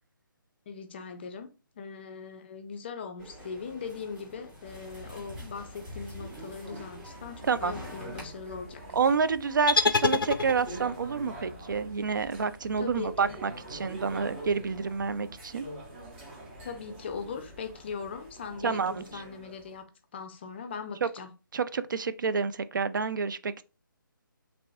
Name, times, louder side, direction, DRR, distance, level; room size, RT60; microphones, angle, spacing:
voice 1, 0.7-1.5 1.8-8.8 12.8-13.4 16.6-19.9 20.1-21.3, left 5 dB, 30° left, 0.4 m, -40 dB
sound 1, 3.2-8.2, equal, 10° right, 0.9 m, -48 dB
sound 2, 4.6-19.8, right 1 dB, 30° right, 1.1 m, -45 dB
voice 2, 8.9-15.7 18.6-19.2 21.0-21.1 21.5-23.6, right 5 dB, 60° right, 0.4 m, -29 dB
sound 3, 9.7-11.0, left 4 dB, 90° left, 0.4 m, -26 dB
3.1 x 2.9 x 2.6 m
figure-of-eight pair, 150°, 12 cm